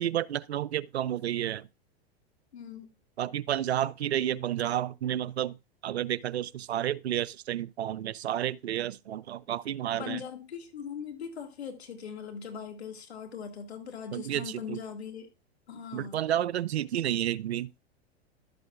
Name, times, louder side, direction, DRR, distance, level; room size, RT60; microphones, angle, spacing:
voice 1, 0.0-1.7 3.2-10.2 14.1-14.8 15.9-17.7, right 11 dB, 90° right, 0.5 m, -31 dB
voice 2, 2.5-2.9 10.0-15.3 15.7-16.2, left 7 dB, 85° left, 2.1 m, -40 dB
12.0 x 7.7 x 2.4 m
hypercardioid pair, 105°, 31 cm